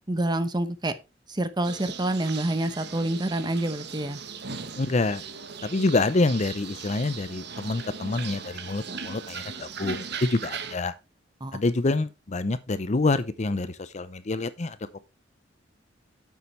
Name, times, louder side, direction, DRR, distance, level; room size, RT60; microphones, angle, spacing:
voice 1, 0.1-0.9 1.3-4.2 11.4-11.6, right 1 dB, 25° right, 0.9 m, -27 dB
sound 1, 1.6-10.8, right 6 dB, 65° right, 1.1 m, -38 dB
voice 2, 4.8-5.2 5.6-10.9 11.5-15.0, left 2 dB, 40° left, 0.6 m, -27 dB
9.5 x 7.2 x 3.2 m
head